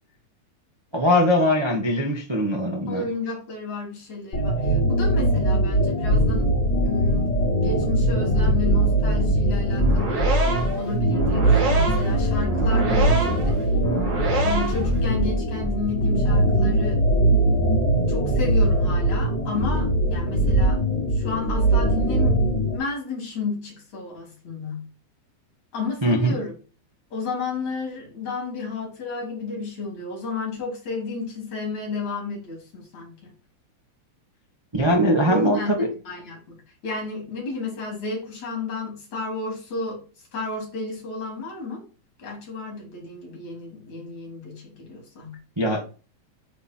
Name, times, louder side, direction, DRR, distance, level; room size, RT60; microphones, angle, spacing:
voice 1, 0.9-3.0 26.0-26.4 34.7-35.9 45.6-45.8, equal, 20° right, 0 dB, 0.6 m, -21 dB
voice 2, 2.9-6.5 6.8-7.3 7.6-10.2 10.7-13.6 14.4-17.0 18.1-20.8 21.1-22.4 22.7-24.9 25.7-26.5 27.1-33.3 35.2-35.8 36.1-36.6 36.8-40.0 40.3-41.8 42.2-45.4, left 3 dB, 70° left, 0 dB, 4.3 m, -32 dB
sound 1, 4.3-22.8, right 1 dB, 30° left, 1.4 m, -21 dB
sound 2, 9.7-15.0, right 3 dB, 80° right, 4.0 m, -27 dB
9.3 x 3.3 x 4.4 m, 0.35 s
omnidirectional pair, 3.3 m